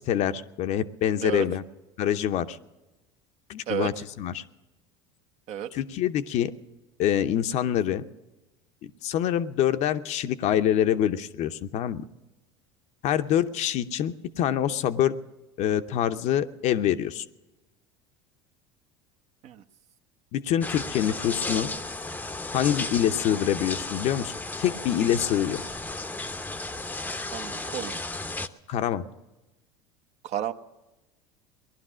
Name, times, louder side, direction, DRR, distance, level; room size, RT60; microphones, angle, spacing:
voice 1, 0.0-1.6 2.0-2.6 3.5-3.9 4.2-4.4 5.7-6.5 7.0-8.0 9.0-12.0 13.0-15.1 15.6-17.2 20.3-21.7 22.5-25.6 28.7-29.0, left 10 dB, 55° left, 10 dB, 0.8 m, -25 dB
sound 1, 20.6-28.5, left 2 dB, 10° left, 0.7 m, -34 dB
voice 2, 27.3-28.0 30.2-30.5, right 10 dB, 50° right, 9 dB, 0.9 m, -31 dB
19.0 x 11.5 x 6.2 m, 1.1 s
hypercardioid pair, 90°, 14 cm